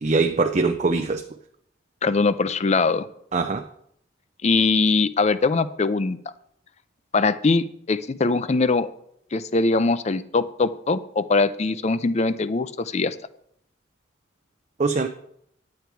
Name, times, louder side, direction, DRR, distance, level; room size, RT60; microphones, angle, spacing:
voice 1, 0.0-1.2 3.3-3.7 14.8-15.1, right 3 dB, 35° right, 0.5 m, -22 dB
voice 2, 2.0-3.1 4.4-6.2 7.1-8.9 9.3-13.2, left 3 dB, 35° left, 0.5 m, -22 dB
10.5 x 8.6 x 4.6 m
head